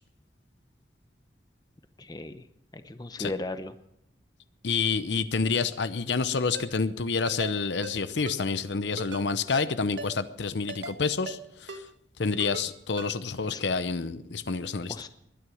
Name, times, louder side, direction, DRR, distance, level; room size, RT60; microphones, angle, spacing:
voice 1, 2.0-2.4 2.7-3.7 13.5-13.6 14.9-15.1, left 2 dB, 20° left, 10 dB, 0.8 m, -36 dB
voice 2, 4.6-11.8 12.2-15.0, left 4 dB, 75° left, 13 dB, 0.8 m, -28 dB
Ringtone, 6.5-6.7 7.3-7.5 7.8-8.0 8.3-8.4 9.0-9.2 9.5-9.7 10.0-10.1 10.7-11.0 11.3-11.4 11.7-11.8 12.4-12.7 13.0-13.1, right 2 dB, 85° right, 1.5 m, -38 dB
21.5 x 9.9 x 6.4 m, 0.81 s
head